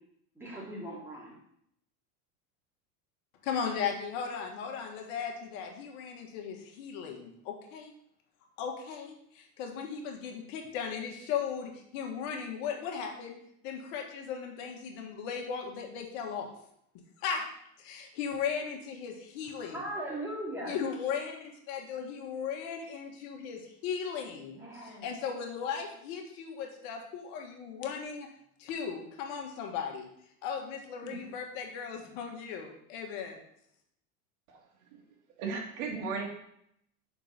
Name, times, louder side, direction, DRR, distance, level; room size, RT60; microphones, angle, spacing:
voice 1, 0.4-1.3 19.7-20.8 24.5-25.1 31.0-31.2, right 1 dB, 5° right, -5 dB, 2.5 m, -39 dB
voice 2, 3.4-7.9 8.6-13.4 13.6-16.5 17.2-17.4 17.8-19.9 20.6-28.3 28.6-30.1 30.4-33.4, left 7 dB, 60° left, 2 dB, 1.5 m, -37 dB
voice 3, 35.4-36.3, right 4 dB, 65° right, 1 dB, 1.9 m, -35 dB
5.3 x 4.4 x 5.6 m, 0.73 s
supercardioid pair, 125°, 44 cm